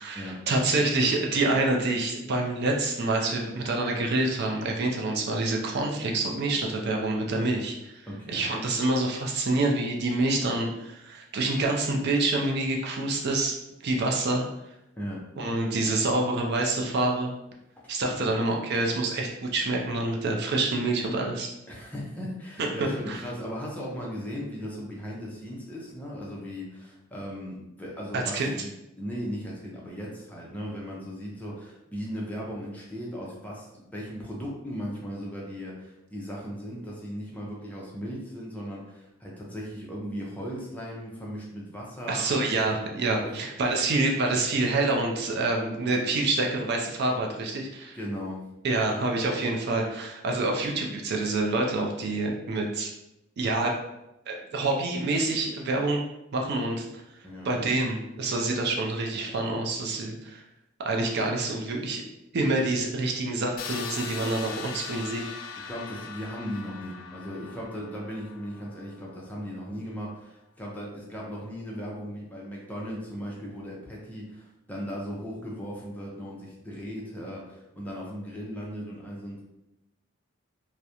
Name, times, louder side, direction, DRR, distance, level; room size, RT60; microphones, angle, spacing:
voice 1, 0.0-8.0 8.3-13.5 13.8-14.4 15.4-17.3 17.9-21.5 23.1-23.2 28.1-28.5 42.1-48.0 48.6-52.9 53.4-53.7 54.3-56.0 56.3-57.0 57.4-60.4 60.8-62.0 62.3-65.2, right 2 dB, 55° right, 1 dB, 0.4 m, -27 dB
voice 2, 8.1-8.5 15.0-15.3 17.8-17.9 21.7-28.7 29.0-42.2 43.2-43.3 47.9-48.4 57.2-57.7 65.7-79.4, equal, 10° left, -4 dB, 0.5 m, -37 dB
sound 1, 63.6-69.4, left 6 dB, 85° left, 0.3 m, -40 dB
2.3 x 2.1 x 2.8 m, 0.89 s
head